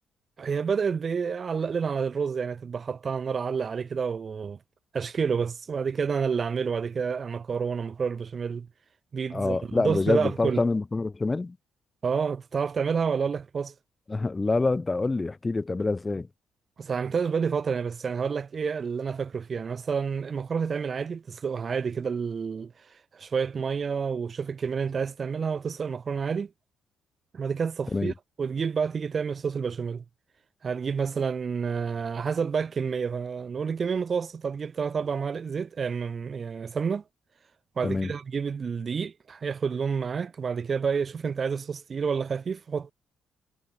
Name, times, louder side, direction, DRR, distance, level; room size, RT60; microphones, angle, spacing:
voice 1, 0.4-4.6 4.9-8.7 9.1-10.6 12.0-13.7 16.8-22.7 23.1-26.5 27.3-30.0 30.6-37.0 37.8-42.9, right 6 dB, 45° right, 4.3 m, -29 dB
voice 2, 9.3-11.6 14.1-16.3 27.9-28.1 37.8-38.1, left 3 dB, 25° left, 1.2 m, -26 dB
cardioid pair, 90°, 0 cm